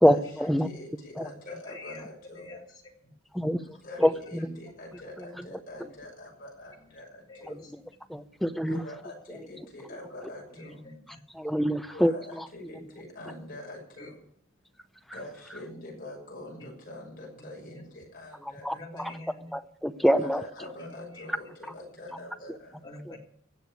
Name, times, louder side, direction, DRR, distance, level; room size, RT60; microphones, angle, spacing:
voice 1, 0.0-2.5 3.6-7.6 8.0-8.1 8.6-10.8 11.9-14.2 15.1-19.2 20.2-22.8, left 1 dB, 45° left, -1 dB, 6.6 m, -44 dB
voice 2, 1.6-2.1 2.3-2.7 3.0-3.1 4.0-4.1 7.3-7.7 10.5-11.2 14.0-14.1 16.6-16.7 17.7-17.8 18.7-19.6 20.8-21.3 22.1-22.3 22.8-23.2, left 2 dB, 20° left, -1 dB, 3.1 m, -46 dB
voice 3, 8.1-8.8 11.4-12.1 18.6-18.7 19.5-20.4, equal, ahead, 9 dB, 0.6 m, -23 dB
16.5 x 6.8 x 9.4 m, 0.68 s
head